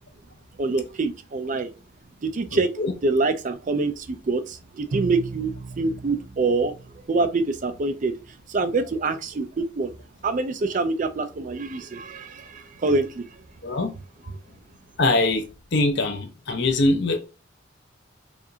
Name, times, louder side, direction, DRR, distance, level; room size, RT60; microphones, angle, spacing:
voice 1, 0.6-1.7 2.2-2.7 3.0-6.7 7.1-8.1 8.5-9.9 10.2-13.2, right 3 dB, 40° right, 0.4 m, -25 dB
voice 2, 2.5-2.9 13.6-13.9 15.0-15.5 15.7-17.2, left 2 dB, 55° left, 0.7 m, -23 dB
Bowed string instrument, 4.9-7.7, right 3 dB, 90° right, 0.5 m, -36 dB
4.8 x 2.5 x 2.8 m
head